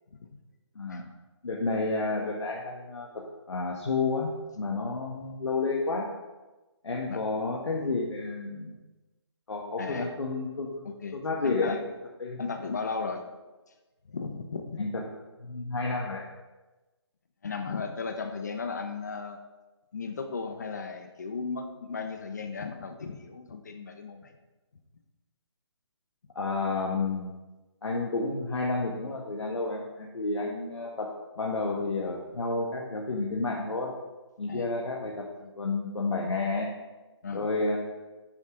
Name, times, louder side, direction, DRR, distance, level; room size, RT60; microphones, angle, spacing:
voice 1, 1.4-6.1 6.8-8.7 9.5-10.9 11.1-11.8 12.2-12.4 14.8-15.0 15.4-16.2 26.4-27.4 27.8-33.9 34.4-36.7 37.3-37.8, left 3 dB, 80° left, -2 dB, 1.7 m, -31 dB
voice 2, 9.8-10.1 10.8-11.2 11.4-11.8 12.4-13.2 14.1-14.8 17.4-19.4 19.9-24.3 34.5-34.7 37.2-37.5, left 4 dB, 40° left, 6 dB, 0.9 m, -35 dB
9.8 x 9.7 x 3.9 m, 1.1 s
hypercardioid pair, 175°, 15 cm